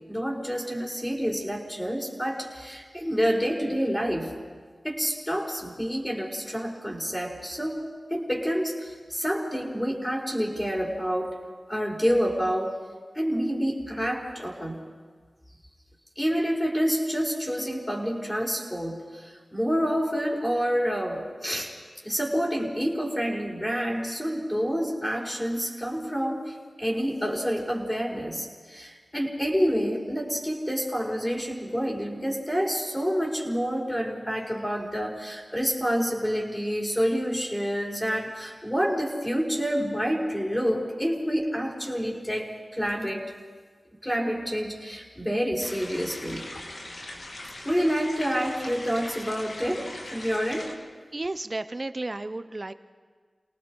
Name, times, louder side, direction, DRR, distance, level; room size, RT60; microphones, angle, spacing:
voice 1, 0.1-4.3 4.8-11.4 11.7-12.8 13.1-14.8 16.1-21.7 22.0-43.3 44.0-46.4 47.6-50.7, equal, 15° left, -2 dB, 4.9 m, -28 dB
sound 1, 45.6-50.7, left 1 dB, 80° left, 2.3 m, -40 dB
voice 2, 51.1-52.7, right 2 dB, 45° right, 12 dB, 0.9 m, -33 dB
29.5 x 18.5 x 4.9 m, 1.5 s
cardioid pair, 40°, 0 cm